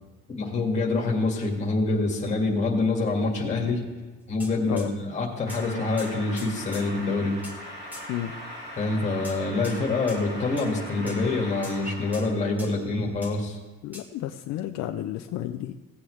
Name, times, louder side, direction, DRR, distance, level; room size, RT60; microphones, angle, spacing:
voice 1, 0.3-3.9 4.3-7.3 8.8-13.6, left 3 dB, 25° left, 0 dB, 2.0 m, -26 dB
sound 1, 4.4-4.9 5.5-5.7 6.0-6.9 7.4-7.6 7.9-8.1 9.2-9.8 10.1-10.2 10.6-10.7 11.1-11.3 11.6-11.9 12.1-12.3 12.6-12.8 13.2-13.4 13.9-14.1, left 1 dB, 5° right, 1.2 m, -43 dB
sound 2, 5.5-12.4, equal, 35° right, 2.4 m, -40 dB
voice 2, 13.8-15.9, left 12 dB, 65° left, 6 dB, 0.5 m, -32 dB
17.0 x 8.6 x 3.2 m, 1.3 s
cardioid pair, 175°, 30 cm